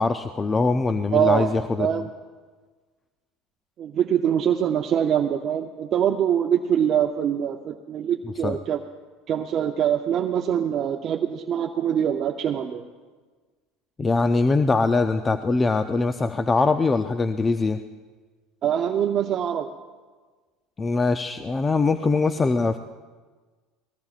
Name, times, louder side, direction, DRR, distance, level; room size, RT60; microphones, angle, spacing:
voice 1, 0.0-2.0 8.4-8.6 14.0-17.8 20.8-22.8, left 3 dB, 20° left, 9 dB, 0.5 m, -22 dB
voice 2, 1.1-1.5 1.8-2.1 3.8-8.8 9.3-12.8 18.6-19.7, right 9 dB, 45° right, 3 dB, 0.6 m, -24 dB
22.5 x 19.0 x 2.4 m, 1.4 s
supercardioid pair, 115°, 0 cm